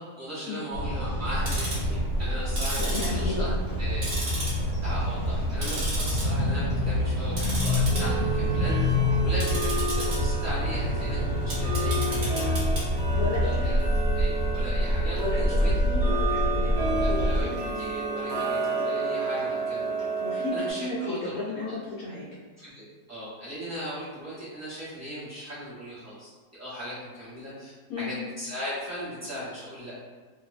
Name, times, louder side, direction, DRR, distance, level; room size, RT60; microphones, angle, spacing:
voice 1, 0.0-3.5 3.8-4.1 4.8-8.9 9.2-12.8 13.4-13.8 14.1-15.7 17.0-20.1 20.5-21.7 22.6-26.3 26.6-27.7 28.0-29.9, equal, 20° right, -12 dB, 0.4 m, -38 dB
sound 1, 0.7-17.4, equal, 50° left, 1.2 m, -26 dB
Tick-tock, 1.3-1.9 2.5-3.8 4.0-4.9 5.2-6.2 6.6-6.9 7.3-20.7, right 2 dB, 55° right, 0.7 m, -31 dB
voice 2, 2.8-3.5 13.1-13.8 15.2-17.8 20.2-22.3 27.9-28.1, left 2 dB, 70° left, -8 dB, 0.9 m, -33 dB
3.0 x 2.0 x 2.4 m, 1.4 s
omnidirectional pair, 1.9 m